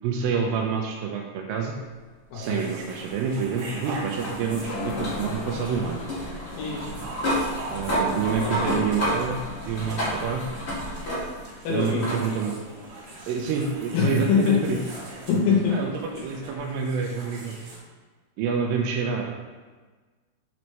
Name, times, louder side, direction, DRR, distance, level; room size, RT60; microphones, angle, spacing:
voice 1, 0.0-1.7 2.3-6.0 7.7-10.4 11.7-12.6 13.3-14.8 15.7-17.6 18.4-19.3, right 6 dB, 80° right, 1 dB, 2.1 m, -28 dB
sound 1, 2.2-15.7, left 3 dB, 90° left, 3.0 m, -44 dB
sound 2, 2.3-17.8, right 2 dB, 65° right, 2.4 m, -43 dB
sound 3, 2.7-11.6 12.0-12.2 13.5-13.6 16.5-16.6, equal, 50° left, 1.3 m, -31 dB
voice 2, 8.3-8.7 11.6-12.0 13.9-14.6 15.3-15.8, left 6 dB, 75° left, -4 dB, 2.6 m, -23 dB
5.7 x 5.2 x 3.2 m, 1.4 s
omnidirectional pair, 4.6 m